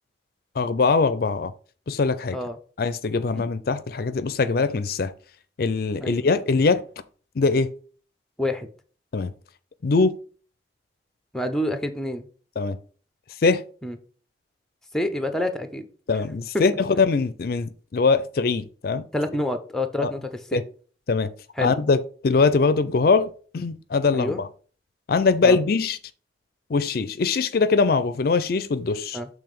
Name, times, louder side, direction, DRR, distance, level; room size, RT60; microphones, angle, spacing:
voice 1, 0.6-1.5 1.9-2.4 2.8-5.1 5.6-6.8 7.4-7.7 9.1-9.3 9.8-10.1 12.6-12.8 13.4-13.6 16.1-19.0 20.0-20.1 20.5-20.6 21.1-21.3 21.6-24.5 25.1-26.0 26.7-29.2, left 4 dB, 55° left, 0.4 m, -22 dB
voice 2, 8.4-8.7 11.3-12.3 13.8-14.0 14.9-15.9 16.5-16.6 19.1-20.6 21.6-21.7 24.1-24.4 25.4-25.6 29.1-29.3, left 1 dB, 5° left, 0.6 m, -27 dB
6.8 x 3.3 x 5.2 m
head